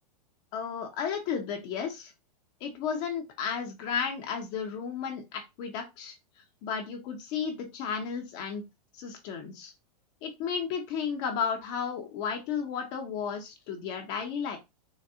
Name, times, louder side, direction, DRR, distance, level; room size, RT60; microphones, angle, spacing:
voice 1, 0.5-2.1 2.6-6.1 6.6-8.6 8.9-9.7 10.2-14.6, left 6 dB, 45° left, 2 dB, 0.9 m, -33 dB
4.1 x 2.6 x 2.4 m, 0.22 s
hypercardioid pair, 130°, 20 cm